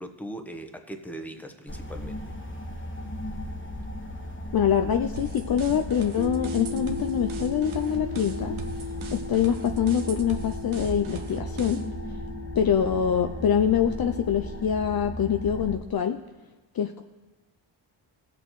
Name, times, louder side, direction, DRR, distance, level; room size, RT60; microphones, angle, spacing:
voice 1, 0.0-2.2, right 1 dB, 5° left, 5 dB, 1.1 m, -39 dB
sound 1, 1.7-15.8, left 1 dB, 25° left, 1.3 m, -36 dB
voice 2, 4.5-8.5 9.1-11.8 12.6-16.2 16.7-17.0, left 8 dB, 50° left, 7 dB, 0.6 m, -25 dB
sound 2, 5.2-12.0, right 6 dB, 75° right, 1.0 m, -41 dB
sound 3, 6.2-15.0, left 3 dB, 20° right, 0.6 m, -38 dB
18.5 x 6.8 x 3.2 m, 1.2 s
cardioid pair, 50°, 49 cm